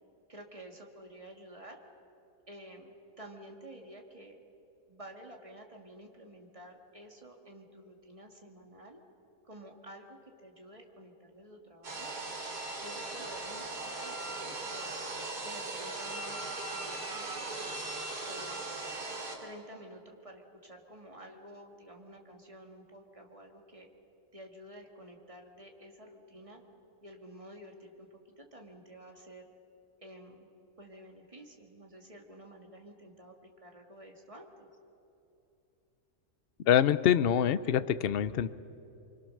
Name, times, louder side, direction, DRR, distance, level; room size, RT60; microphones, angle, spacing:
voice 1, 0.3-1.8 2.5-4.4 4.9-9.0 9.4-12.1 12.8-14.9 15.4-17.8 18.2-18.6 19.4-23.9 24.3-26.6 27.0-28.1 28.4-29.5 30.0-30.5 30.8-34.7, right 1 dB, 20° right, 1 dB, 2.3 m, -51 dB
sound 1, 11.8-19.4, right 2 dB, 85° right, 4.2 m, -39 dB
voice 2, 36.7-38.5, left 9 dB, 60° left, 14 dB, 0.6 m, -25 dB
26.0 x 24.0 x 6.6 m, 2.9 s
omnidirectional pair, 1.6 m